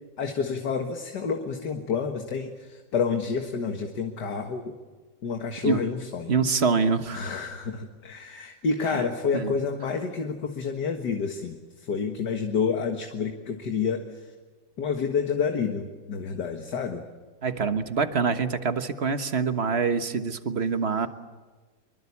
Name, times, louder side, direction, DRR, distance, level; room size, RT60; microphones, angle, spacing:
voice 1, 0.2-4.8 5.2-6.4 7.1-14.3 14.8-17.1, left 5 dB, 65° left, 4 dB, 2.2 m, -29 dB
voice 2, 6.3-7.3 8.9-9.0 9.3-9.5 17.4-21.1, right 5 dB, 40° right, 9 dB, 1.4 m, -25 dB
25.5 x 23.5 x 8.5 m, 1.3 s
omnidirectional pair, 2.0 m